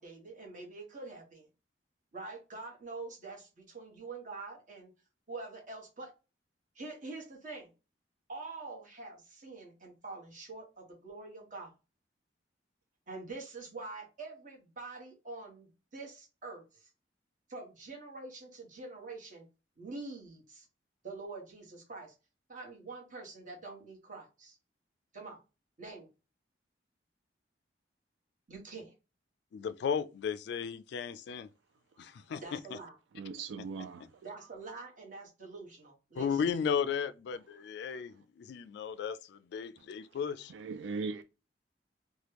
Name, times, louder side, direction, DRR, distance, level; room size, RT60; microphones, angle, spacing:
voice 1, 0.0-1.5 2.1-4.9 5.3-6.1 6.7-7.7 8.3-11.7 13.1-16.9 17.5-19.5 19.8-20.7 21.0-22.1 22.5-24.6 25.1-25.4 25.8-26.1 28.5-28.9 32.4-32.9 34.2-36.4, right 3 dB, 45° right, 1.3 m, -45 dB
voice 2, 29.5-31.5 32.0-32.8 33.6-33.7 36.1-40.5, left 7 dB, 65° left, 0.3 m, -35 dB
voice 3, 33.2-34.0 40.5-41.2, right 4 dB, 80° right, 0.4 m, -38 dB
3.0 x 2.2 x 3.3 m
head